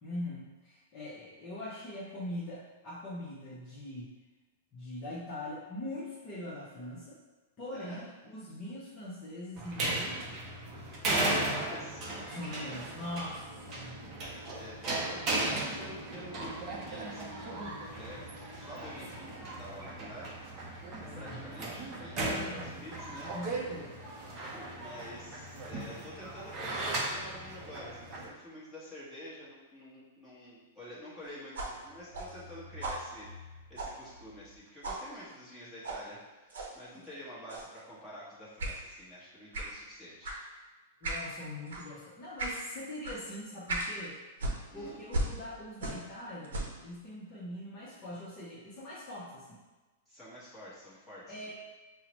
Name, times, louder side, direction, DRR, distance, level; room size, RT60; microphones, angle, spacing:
voice 1, 0.0-4.1 4.7-7.2 7.6-10.4 12.3-14.0 21.1-21.4 22.2-22.7 23.3-24.0 36.9-37.0 41.0-44.2 44.7-49.6 51.3-51.5, left 1 dB, 25° left, -7 dB, 0.7 m, -42 dB
voice 2, 7.7-8.0 11.1-12.1 14.5-20.3 21.1-23.3 24.4-36.4 36.7-40.4 44.7-45.0 50.1-51.5, equal, ahead, -10 dB, 1.0 m, -48 dB
sound 1, 9.6-28.3, right 2 dB, 25° right, 0.5 m, -37 dB
sound 2, 31.5-34.6 34.8-35.1 35.8-36.0 36.5-36.7 37.5-37.8 38.6-38.8 39.5-39.8 40.2-40.4 41.0-41.3 41.7-41.9 42.4-42.6 43.0-43.2 43.7-44.0 44.4-46.1 46.4-46.8, right 1 dB, 85° right, 0.7 m, -37 dB
5.6 x 2.0 x 2.9 m, 1.2 s
supercardioid pair, 160°, 0 cm